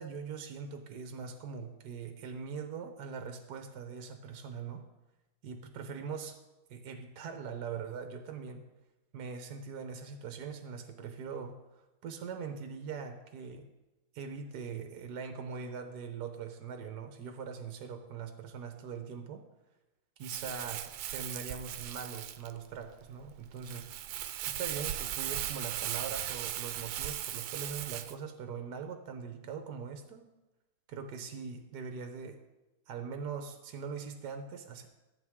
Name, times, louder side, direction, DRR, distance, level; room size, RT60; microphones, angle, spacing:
voice 1, 0.0-4.8 5.4-6.4 6.7-8.6 9.1-11.5 12.0-13.7 14.1-19.4 20.2-23.9 24.5-30.3 30.9-32.4 32.9-34.9, right 6 dB, 60° right, 6 dB, 1.3 m, -41 dB
Crumpling crinkling, 20.2-28.2, right 11 dB, 85° right, 1.4 m, -38 dB
14.0 x 8.1 x 3.6 m, 1.0 s
omnidirectional pair, 2.2 m